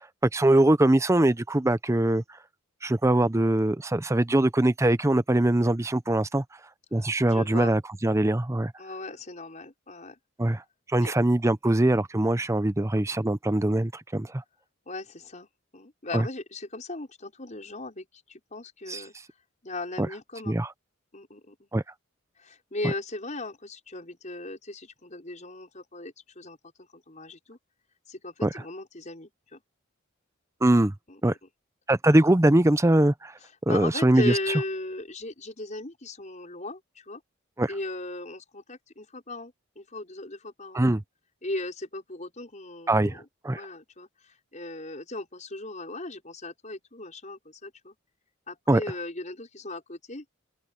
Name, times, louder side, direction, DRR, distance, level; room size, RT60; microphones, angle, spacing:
voice 1, 0.3-2.2 2.8-6.4 6.9-8.7 10.4-10.6 10.9-14.4 16.1-16.3 18.9-19.0 20.0-20.1 20.5-20.7 21.7-21.8 28.4-28.5 30.6-30.9 31.2-31.3 31.9-33.3 33.7-34.3 37.6-37.7 40.7-41.0 42.9-43.6 48.7-48.8, right 1 dB, 15° right, 0.6 m, -22 dB
voice 2, 6.9-7.8 8.8-10.2 11.0-11.1 14.9-15.5 15.7-19.1 19.6-20.6 21.1-21.7 22.4-27.6 28.1-29.6 31.1-31.4 33.7-37.2 37.7-40.8 41.4-43.3 43.5-47.9 48.5-50.2, left 2 dB, 35° left, 5.6 m, -37 dB
open air
head